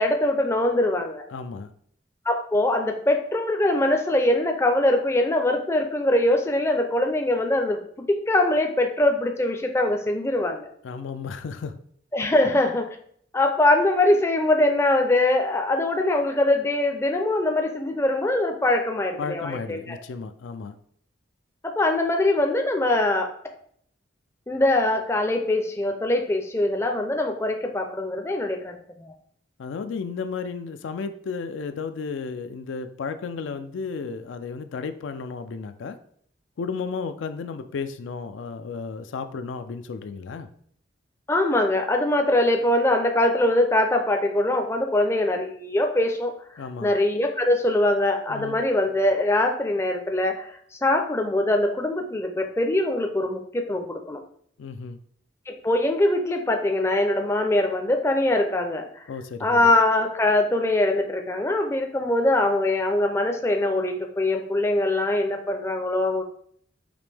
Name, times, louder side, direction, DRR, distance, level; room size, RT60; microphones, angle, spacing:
voice 1, 0.0-1.2 2.3-10.7 12.1-13.0 13.3-20.0 21.6-23.3 24.5-29.1 41.3-46.3 46.8-54.2 55.5-59.0 59.4-66.2, left 1 dB, 15° left, 3 dB, 0.4 m, -22 dB
voice 2, 1.3-1.7 10.8-11.7 19.2-20.8 29.6-36.0 36.6-40.5 46.6-46.9 48.3-48.6 54.6-55.0 59.1-59.7, left 5 dB, 80° left, 10 dB, 0.4 m, -33 dB
5.1 x 3.0 x 3.3 m, 0.62 s
head